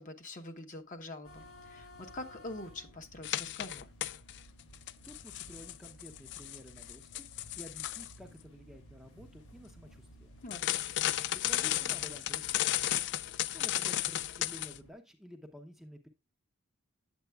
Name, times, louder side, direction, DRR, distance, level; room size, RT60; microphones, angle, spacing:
voice 1, 0.0-3.9 10.4-10.8, left 2 dB, 40° left, 1.0 m, -45 dB
sound 1, 1.2-14.9, equal, 80° left, 2.5 m, -56 dB
sound 2, 3.2-4.4 4.7-8.1 10.5-14.8, left 13 dB, 55° left, 0.3 m, -34 dB
voice 2, 5.0-7.3 7.6-10.3 11.3-12.8 13.5-16.1, equal, ahead, 0.7 m, -51 dB
8.8 x 8.0 x 2.3 m
head